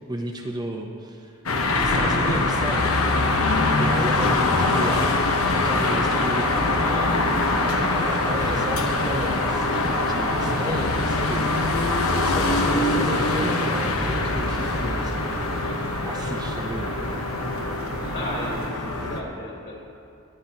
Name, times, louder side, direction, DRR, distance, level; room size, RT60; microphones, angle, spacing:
voice 1, 0.1-1.3 1.8-2.9 3.8-9.7 10.0-15.2 15.6-15.7 16.0-16.9, right 1 dB, 20° right, 1 dB, 0.6 m, -33 dB
sound 1, 1.5-19.2, left 2 dB, 80° left, 1.0 m, -23 dB
sound 2, 6.8-18.7, right 5 dB, 60° right, 0.5 m, -38 dB
sound 3, 7.7-15.7, equal, 30° left, 1.3 m, -44 dB
voice 2, 18.1-19.8, equal, 50° left, -3 dB, 2.8 m, -34 dB
19.5 x 9.6 x 2.9 m, 2.6 s
head